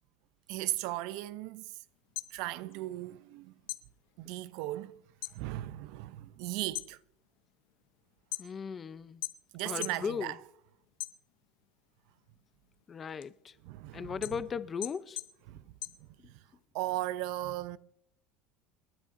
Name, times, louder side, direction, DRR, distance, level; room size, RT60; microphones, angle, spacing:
voice 1, 0.5-1.7 2.3-3.5 4.2-5.0 5.3-7.0 9.5-10.4 13.6-14.4 15.5-15.7 16.3-16.4 16.7-17.8, right 16 dB, 70° right, 0.5 m, -37 dB
sound 1, 2.0-3.3 3.6-5.4 5.8-6.2 6.6-8.8 9.2-10.1 10.4-11.6 12.1-16.6, left 20 dB, 70° left, 0.6 m, -42 dB
voice 2, 8.4-9.2 9.6-10.3 12.9-13.5 13.9-15.2, left 6 dB, 25° left, 0.5 m, -37 dB
29.0 x 10.0 x 2.6 m
cardioid pair, 150°, 0 cm